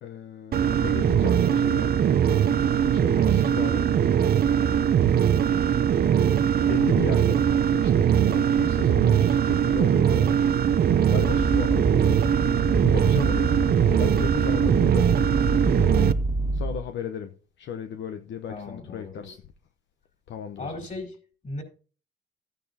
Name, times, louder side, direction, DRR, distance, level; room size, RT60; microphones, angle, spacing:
voice 1, 0.0-2.0 2.8-3.9 6.6-7.4 7.7-10.5 11.1-12.2 12.8-13.6 14.0-15.1 16.5-17.3 17.6-19.4 20.3-20.7, left 8 dB, 70° left, 0.9 m, -35 dB
sound 1, 0.5-16.1, right 9 dB, 50° right, 0.6 m, -21 dB
sound 2, 11.1-16.8, right 2 dB, 25° right, 1.5 m, -28 dB
voice 2, 18.5-19.3 20.6-21.2 21.4-21.6, left 2 dB, 40° left, 4.4 m, -37 dB
13.5 x 9.1 x 2.8 m
cardioid pair, 90°, 20 cm